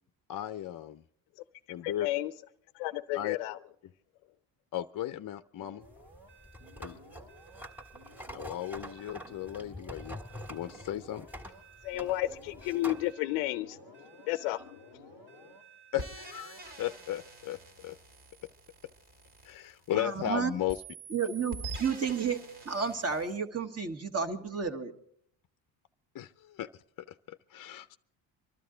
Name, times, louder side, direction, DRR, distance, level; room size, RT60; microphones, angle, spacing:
voice 1, 0.3-1.0 1.7-2.1 3.1-3.4 4.7-5.8 6.8-7.0 8.3-10.2 10.5-11.3 15.9-18.0 19.4-20.8 26.1-26.8 27.1-28.0, left 12 dB, 45° left, 0.6 m, -36 dB
voice 2, 1.8-2.3 2.7-3.6 11.8-15.5, left 16 dB, 85° left, 0.5 m, -33 dB
sound 1, 5.6-17.7, right 2 dB, 85° right, 3.8 m, -56 dB
sound 2, 5.8-13.1, equal, 5° right, 1.8 m, -46 dB
sound 3, 16.0-20.3 20.7-23.4, right 2 dB, 55° right, 2.4 m, -45 dB
voice 3, 19.9-20.5 21.1-22.4 22.6-24.9, right 6 dB, 30° right, 1.6 m, -31 dB
24.0 x 12.5 x 3.8 m
supercardioid pair, 65°, 49 cm